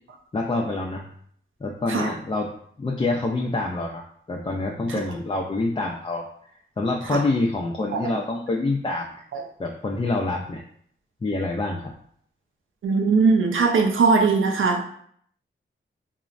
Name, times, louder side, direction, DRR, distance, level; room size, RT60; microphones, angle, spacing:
voice 1, 0.3-1.1 1.6-6.3 6.8-9.2 9.6-10.6 11.2-11.9, left 2 dB, 25° left, -1 dB, 0.4 m, -26 dB
voice 2, 12.8-14.8, right 4 dB, 75° right, 3 dB, 0.5 m, -20 dB
3.0 x 2.0 x 2.4 m, 0.63 s
cardioid pair, 45°, 21 cm